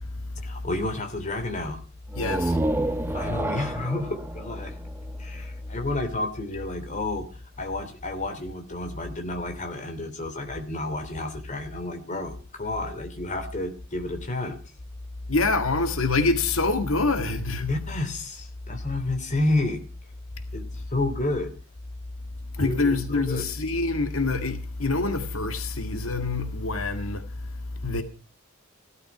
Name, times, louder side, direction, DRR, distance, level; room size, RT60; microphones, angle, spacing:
voice 1, 0.4-1.8 3.1-4.7 5.2-7.3 7.6-14.6 17.7-19.8 20.5-20.6 20.9-21.5 22.6-23.4, left 2 dB, 35° left, 3.1 m, -30 dB
sound 1, 2.1-5.7, right 1 dB, 10° right, 0.8 m, -29 dB
voice 2, 2.2-2.6 15.3-17.8 22.5-28.0, left 3 dB, 90° left, 1.9 m, -26 dB
16.0 x 13.0 x 5.9 m
head